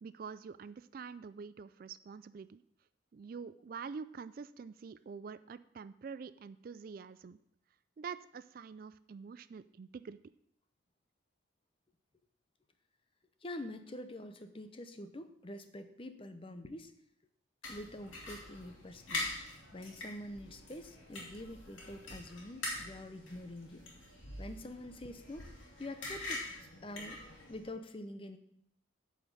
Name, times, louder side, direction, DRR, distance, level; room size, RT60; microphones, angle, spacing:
voice 1, 0.0-2.6 3.1-7.4 8.0-10.2, right 5 dB, 45° right, 14 dB, 0.3 m, -46 dB
voice 2, 13.4-16.9 17.7-19.3 19.7-23.8 24.4-27.2 27.5-28.4, left 1 dB, 25° left, 9 dB, 0.7 m, -46 dB
sound 1, 17.6-27.7, left 2 dB, 80° left, 2.6 m, -44 dB
9.4 x 5.0 x 7.1 m, 0.71 s
head